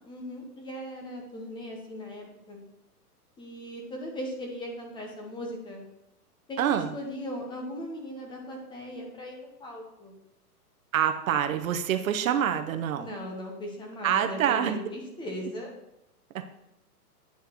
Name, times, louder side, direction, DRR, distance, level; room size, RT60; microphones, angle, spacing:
voice 1, 0.1-2.6 3.4-5.8 6.5-10.2 13.0-15.7, equal, 10° left, 1 dB, 0.7 m, -38 dB
voice 2, 6.6-6.9 10.9-13.1 14.0-14.8 16.3-16.4, right 9 dB, 60° right, 8 dB, 0.7 m, -26 dB
8.8 x 5.6 x 2.9 m, 0.86 s
hypercardioid pair, 135°, 47 cm